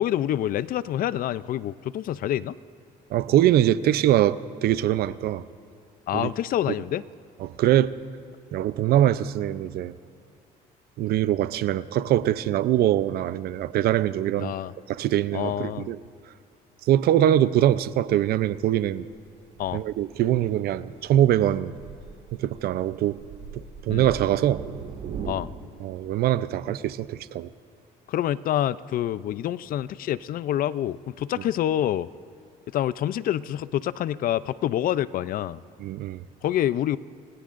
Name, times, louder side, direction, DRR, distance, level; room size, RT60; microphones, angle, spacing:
voice 1, 0.0-2.5 6.1-7.0 14.4-14.7 15.3-15.9 19.6-19.8 23.9-24.1 25.3-25.5 28.1-32.1 32.7-35.6 36.4-37.0, left 12 dB, 55° left, 17 dB, 0.5 m, -27 dB
voice 2, 3.1-5.4 6.1-6.3 7.4-7.9 8.5-9.9 11.0-14.5 14.9-16.0 16.9-19.0 19.7-21.7 22.4-23.2 23.5-24.6 25.8-27.5 35.8-36.2, right 12 dB, 65° right, 15 dB, 0.6 m, -23 dB
Thunder, 17.4-25.3, right 7 dB, 85° right, 2.0 m, -41 dB
29.5 x 18.0 x 2.6 m, 2.6 s
cardioid pair, 110°, 17 cm